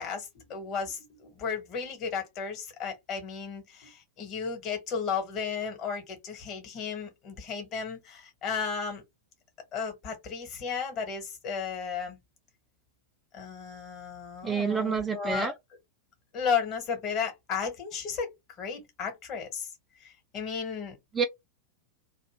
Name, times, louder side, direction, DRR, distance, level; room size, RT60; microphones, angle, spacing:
voice 1, 0.0-9.0 9.7-12.2 13.3-15.5 16.3-18.3 18.6-19.7 20.0-20.9, left 6 dB, 35° left, 1.4 m, -34 dB
voice 2, 14.4-15.5 21.1-21.3, right 6 dB, 15° right, 0.4 m, -28 dB
2.7 x 2.5 x 3.5 m
figure-of-eight pair, 90°, 0 cm